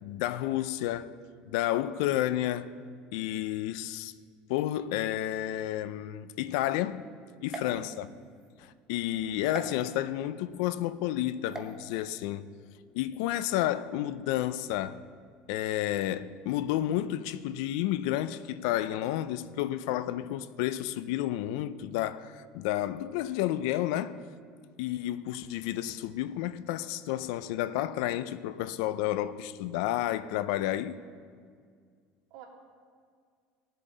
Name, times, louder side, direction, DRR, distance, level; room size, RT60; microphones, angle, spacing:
voice 1, 0.0-1.2 1.5-2.7 3.1-4.1 4.5-7.1 7.4-8.1 8.6-12.5 12.9-15.0 15.5-24.2 24.8-31.0, left 13 dB, 80° left, 0.5 m, -31 dB
voice 2, 7.4-8.0 32.3-32.5, right 4 dB, 75° right, 2.9 m, -47 dB
sound 1, 7.5-8.5 9.5-9.7 11.5-11.7, right 4 dB, 20° right, 1.0 m, -42 dB
19.5 x 7.5 x 3.9 m
cardioid pair, 135°, 3 cm